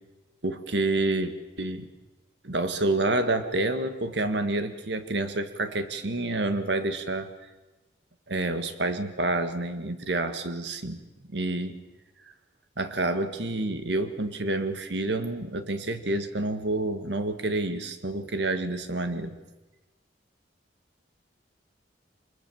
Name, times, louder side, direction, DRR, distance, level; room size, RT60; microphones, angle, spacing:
voice 1, 0.4-1.9 2.4-7.3 8.3-11.0 11.3-11.8 12.8-19.4, right 2 dB, 75° right, 9 dB, 1.8 m, -28 dB
24.5 x 21.5 x 7.2 m, 1.1 s
head